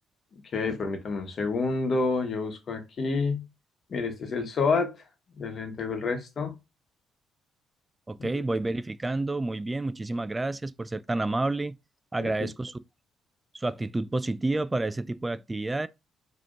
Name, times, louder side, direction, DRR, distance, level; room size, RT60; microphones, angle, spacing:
voice 1, 0.5-3.4 3.9-4.9 5.4-6.5 8.2-8.4 12.2-12.5, left 4 dB, 55° left, 1.3 m, -29 dB
voice 2, 8.1-11.8 12.1-12.8 13.5-15.9, right 2 dB, 20° right, 0.3 m, -29 dB
4.9 x 3.0 x 2.6 m
hypercardioid pair, 50°, 0 cm